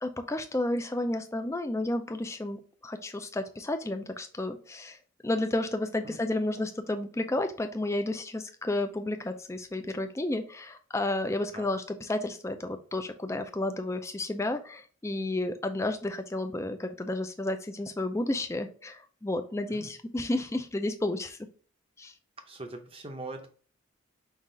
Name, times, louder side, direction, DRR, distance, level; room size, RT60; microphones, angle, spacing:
voice 1, 0.0-5.0 5.2-21.4 22.0-22.1, left 2 dB, 15° left, 7 dB, 0.3 m, -32 dB
voice 2, 22.5-23.5, right 2 dB, 25° right, 5 dB, 0.6 m, -41 dB
5.6 x 2.4 x 3.7 m, 0.43 s
head